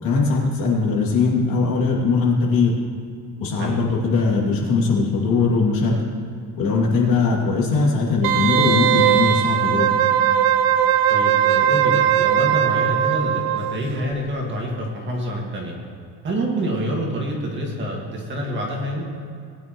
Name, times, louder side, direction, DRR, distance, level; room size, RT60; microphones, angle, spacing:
voice 1, 0.0-2.7 3.4-5.9 6.6-9.9, left 4 dB, 50° left, -2 dB, 2.6 m, -20 dB
Wind instrument woodwind instrument, 8.2-13.8 14.1-14.2, right 10 dB, 70° right, 0.7 m, -19 dB
voice 2, 11.1-15.8 16.2-19.1, equal, 25° right, -1 dB, 1.9 m, -27 dB
19.5 x 10.5 x 3.1 m, 2.3 s
cardioid pair, 180°, 43 cm